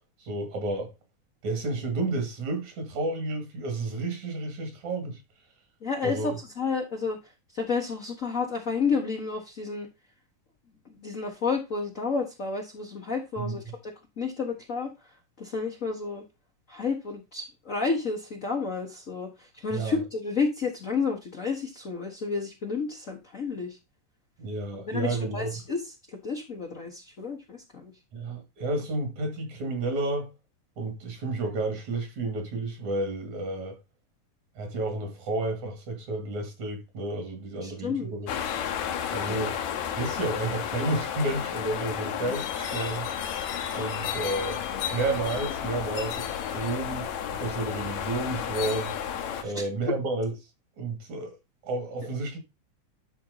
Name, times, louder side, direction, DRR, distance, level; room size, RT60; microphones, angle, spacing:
voice 1, 0.2-0.9 1.4-5.2 6.0-6.4 13.4-13.7 19.7-20.0 24.4-25.6 28.1-30.3 30.8-33.8 34.6-38.3 39.1-39.6 40.0-43.1 43.7-44.6 44.9-46.2 46.5-47.1 47.3-49.0 49.4-50.3 50.8-51.3 51.6-52.4, right 2 dB, 65° right, 3.3 m, -31 dB
voice 2, 5.8-7.2 7.5-9.9 10.8-14.9 15.4-16.2 16.7-23.8 24.8-25.8 26.1-27.9 37.6-38.1 39.3-39.5 49.4-49.7, left 4 dB, 50° left, 0.9 m, -31 dB
sound 1, 38.3-49.4, left 9 dB, 70° left, 2.2 m, -32 dB
12.0 x 4.3 x 4.0 m
omnidirectional pair, 3.6 m